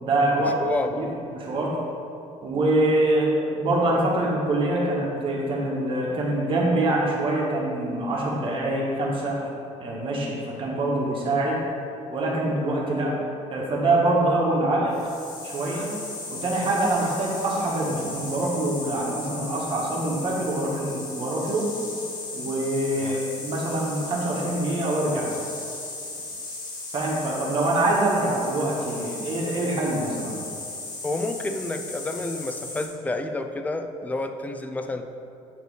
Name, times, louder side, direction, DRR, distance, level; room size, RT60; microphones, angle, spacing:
voice 1, 0.0-0.6 1.0-1.1 1.3-1.8 2.4-9.4 9.8-11.6 12.1-13.1 13.5-14.9 15.4-15.9 16.3-21.7 22.3-25.3 26.9-30.3, right 1 dB, 45° right, -3 dB, 1.3 m, -24 dB
voice 2, 0.6-1.2 23.0-23.2 31.0-35.0, left 2 dB, 10° left, 6 dB, 0.3 m, -29 dB
sound 1, 14.9-32.9, left 3 dB, 30° left, 1.3 m, -36 dB
9.0 x 3.2 x 4.8 m, 2.6 s
cardioid pair, 155°, 13 cm